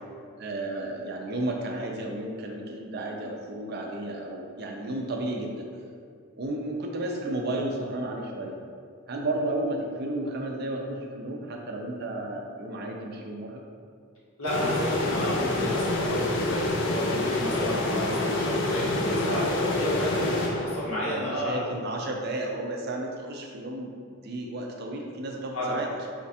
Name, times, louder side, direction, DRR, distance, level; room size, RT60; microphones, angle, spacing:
voice 1, 0.4-5.7 6.4-8.6 9.1-13.6 21.1-25.9, right 1 dB, 45° right, 1 dB, 0.5 m, -33 dB
voice 2, 14.4-21.6 25.5-25.8, equal, 90° left, -7 dB, 1.4 m, -31 dB
sound 1, 14.5-21.1, left 2 dB, 55° left, 0.4 m, -27 dB
4.3 x 2.4 x 4.1 m, 2.2 s
head